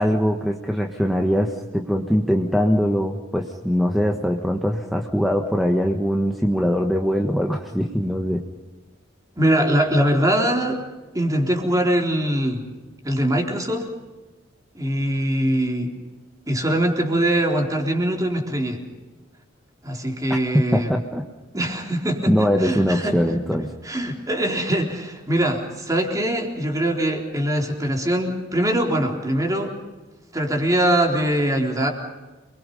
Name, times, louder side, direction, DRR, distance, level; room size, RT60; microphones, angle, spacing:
voice 1, 0.0-8.4 20.7-21.2 22.3-23.7, equal, ahead, 2 dB, 1.5 m, -22 dB
voice 2, 9.4-10.8 11.1-12.6 13.0-13.9 14.7-15.9 16.5-18.8 19.8-20.9 21.5-23.2 23.8-29.8 30.3-31.9, right 1 dB, 20° right, 1 dB, 4.0 m, -22 dB
29.0 x 22.5 x 5.5 m, 1.2 s
head